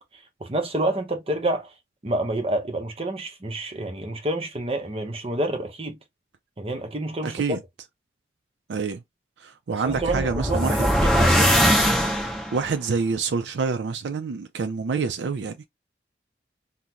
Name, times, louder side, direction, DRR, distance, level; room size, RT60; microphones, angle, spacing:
voice 1, 0.4-1.7 2.0-6.0 6.6-7.6 9.7-11.6, right 1 dB, 30° right, 0.7 m, -28 dB
voice 2, 7.2-7.6 8.7-9.0 9.4-10.8 12.5-15.7, right 5 dB, 80° right, 0.4 m, -27 dB
sound 1, 9.9-12.7, equal, ahead, 0.9 m, -21 dB
3.7 x 2.1 x 2.9 m
head